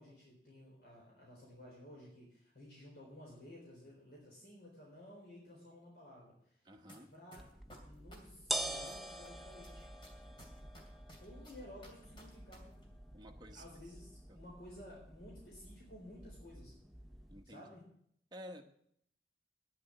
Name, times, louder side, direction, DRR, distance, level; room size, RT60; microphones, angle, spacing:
voice 1, 0.0-6.6 7.1-7.4 7.8-9.9 11.2-12.8 13.5-16.7 17.4-17.8, left 1 dB, 65° left, -3 dB, 4.0 m, -54 dB
voice 2, 6.6-7.1 13.1-13.6 14.3-14.4 17.3-17.7 18.3-18.6, equal, 25° right, 4 dB, 1.0 m, -51 dB
sound 1, 6.9-7.0 7.3-9.3 9.6-12.6 12.8-12.9, equal, 30° left, 2.6 m, -56 dB
sound 2, 7.4-17.4, right 1 dB, ahead, 0.6 m, -46 dB
9.9 x 7.1 x 9.1 m, 0.70 s
head